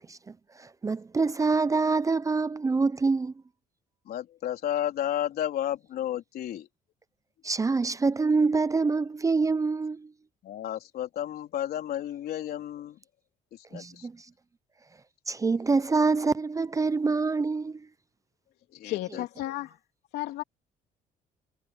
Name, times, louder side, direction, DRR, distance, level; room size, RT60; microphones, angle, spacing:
voice 1, 0.6-3.3 7.4-10.1 13.7-14.1 15.3-17.8, right 4 dB, 20° right, 0.6 m, -25 dB
voice 2, 4.1-6.7 10.4-13.0 13.7-14.1 18.7-19.2, left 11 dB, 65° left, 3.9 m, -32 dB
voice 3, 18.8-19.8 20.1-20.4, left 15 dB, 85° left, 3.2 m, -33 dB
cardioid pair, 110°, 17 cm